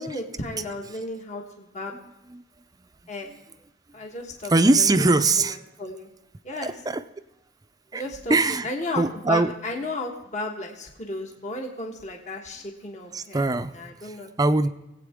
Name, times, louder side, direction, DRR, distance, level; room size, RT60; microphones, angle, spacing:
voice 1, 0.0-1.9 3.1-3.3 3.9-5.1 5.4-6.1 6.4-6.7 7.9-8.4 8.6-13.4 13.7-14.3 14.6-14.7, left 2 dB, 40° left, 1 dB, 1.4 m, -34 dB
voice 2, 4.5-5.6 6.6-7.0 7.9-8.0 8.3-8.7 9.0-9.5 13.1-13.8 14.0-14.7, right 2 dB, 20° right, 10 dB, 0.5 m, -21 dB
20.5 x 8.3 x 3.6 m, 0.97 s
head